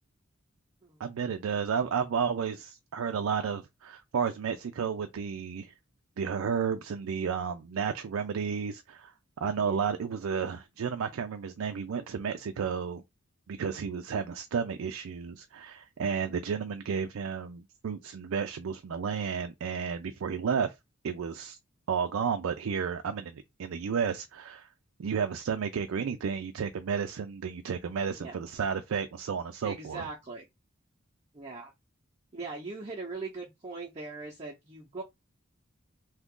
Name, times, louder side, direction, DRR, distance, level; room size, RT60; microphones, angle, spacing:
voice 1, 1.0-5.7 6.2-13.0 13.5-20.7 21.0-21.6 21.9-24.7 25.0-30.0, right 6 dB, 80° right, 0.4 m, -32 dB
voice 2, 9.4-9.8 28.2-28.4 29.6-30.5 31.3-31.7 32.3-35.0, right 3 dB, 30° right, 0.6 m, -40 dB
2.8 x 2.4 x 3.6 m
head